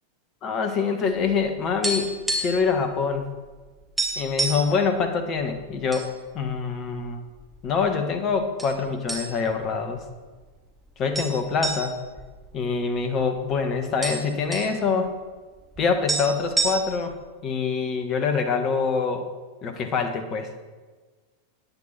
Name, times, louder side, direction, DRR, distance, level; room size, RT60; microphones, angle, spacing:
voice 1, 0.4-2.1 2.4-3.3 4.1-6.1 6.3-7.2 7.6-10.0 11.0-11.9 12.5-15.1 15.8-17.2 17.4-19.3 19.6-20.5, left 5 dB, 30° left, 7 dB, 1.7 m, -25 dB
sound 1, 1.3-2.7 3.0-3.2 3.5-3.6 4.0-4.7 5.4-6.1 6.4-6.6 7.3-7.9 8.6-8.8 9.1-9.6 10.0-10.1 11.1-13.2 13.5-13.6 13.8-14.7 15.8-15.9 16.1-17.1, right 2 dB, 5° right, 2.7 m, -28 dB
18.5 x 10.0 x 4.5 m, 1.3 s
figure-of-eight pair, 90°, 0 cm